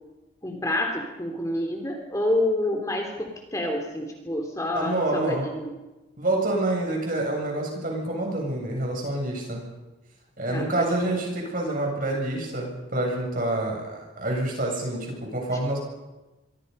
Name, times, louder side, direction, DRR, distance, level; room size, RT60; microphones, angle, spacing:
voice 1, 0.4-5.7 10.5-11.1, left 1 dB, 15° left, 2 dB, 2.9 m, -28 dB
voice 2, 4.7-5.5 6.2-9.6 10.4-15.8, right 1 dB, 45° right, 0 dB, 7.7 m, -27 dB
25.5 x 25.0 x 5.5 m, 1.1 s
head